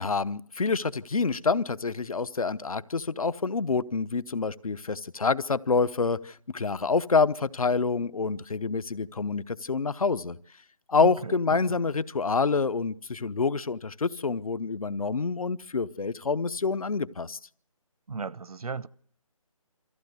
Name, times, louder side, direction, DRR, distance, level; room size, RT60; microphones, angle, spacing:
voice 1, 0.0-10.4 10.9-17.4, left 4 dB, 70° left, 0.9 m, -27 dB
voice 2, 11.0-11.8 18.1-18.9, right 4 dB, 85° right, 0.8 m, -36 dB
23.5 x 14.5 x 8.0 m
hypercardioid pair, 180°, 19 cm